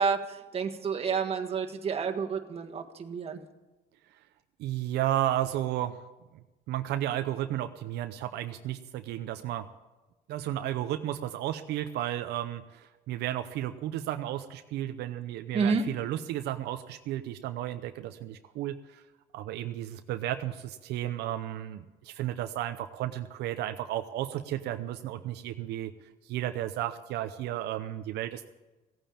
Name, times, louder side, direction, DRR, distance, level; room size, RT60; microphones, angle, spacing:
voice 1, 0.0-3.4 15.5-15.8, right 5 dB, 35° right, 3 dB, 1.7 m, -29 dB
voice 2, 4.6-6.0 6.7-9.7 10.3-19.0 19.3-25.9 26.3-28.5, right 13 dB, 80° right, 8 dB, 0.7 m, -33 dB
16.0 x 9.1 x 8.7 m, 1.1 s
cardioid pair, 110°, 17 cm